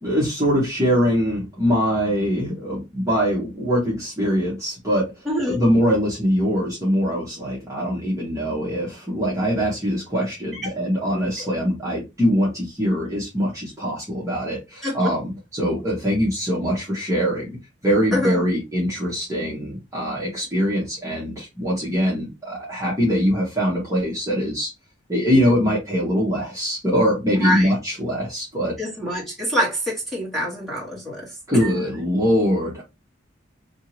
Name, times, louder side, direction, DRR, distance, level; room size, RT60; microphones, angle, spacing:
voice 1, 0.0-5.1 5.5-17.5 17.8-24.7 25.1-28.7 31.5-32.8, equal, 15° right, 1.0 m, -22 dB
voice 2, 5.2-5.6 10.5-10.6 11.4-11.5 14.8-15.1 18.1-18.5 27.4-27.7 28.8-31.3 31.6-31.7, equal, ahead, 1.4 m, -25 dB
2.8 x 2.7 x 2.8 m
head